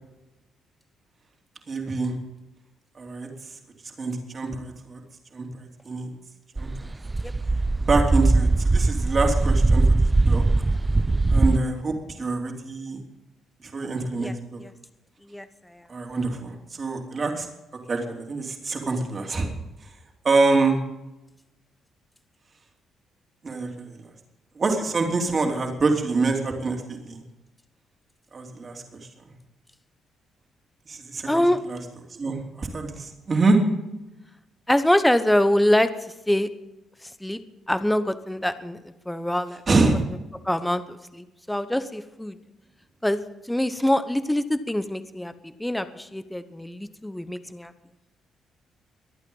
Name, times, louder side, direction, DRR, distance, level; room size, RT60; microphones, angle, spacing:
voice 1, 1.7-2.1 2.9-3.3 4.0-5.0 5.3-6.1 6.6-6.7 7.9-10.4 11.3-13.0 13.6-14.6 15.9-17.5 17.9-19.5 19.8-19.9 20.2-20.8 23.4-24.0 24.5-27.2 28.3-29.0 30.9-31.8 32.1-33.6 39.7-40.0, right 3 dB, 40° right, 2 dB, 3.2 m, -25 dB
sound 1, 6.6-11.6, right 2 dB, 20° right, 0.4 m, -20 dB
voice 2, 15.3-15.8 31.2-31.6 34.7-35.9 36.3-36.5 37.0-37.4 37.7-39.6 40.4-42.4 43.0-47.7, left 1 dB, 5° left, 11 dB, 0.9 m, -24 dB
23.0 x 9.0 x 5.5 m, 0.99 s
cardioid pair, 90°, 0 cm